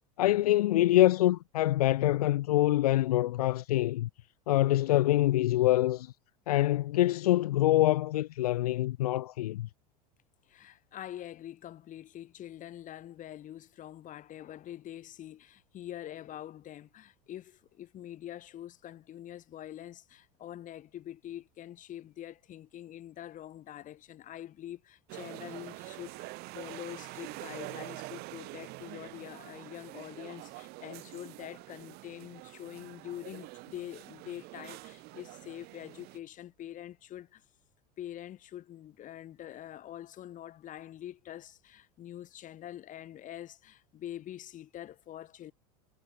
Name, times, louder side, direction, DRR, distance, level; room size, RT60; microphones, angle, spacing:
voice 1, 0.2-4.1 4.5-6.1 6.5-9.7, left 15 dB, 80° left, 1.1 m, -25 dB
voice 2, 10.5-37.4 38.0-45.5, left 12 dB, 40° left, 7.6 m, -45 dB
sound 1, 25.1-36.2, right 22 dB, 55° right, 3.9 m, -46 dB
hypercardioid pair, 95°, 19 cm